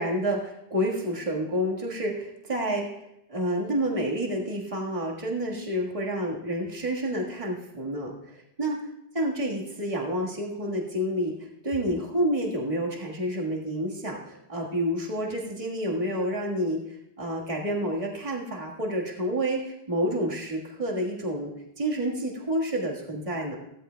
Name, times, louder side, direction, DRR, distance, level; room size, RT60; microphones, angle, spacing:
voice 1, 0.0-8.8 9.1-21.5 21.8-23.6, equal, 35° right, -2 dB, 1.7 m, -29 dB
16.0 x 14.0 x 2.3 m, 0.82 s
omnidirectional pair, 1.0 m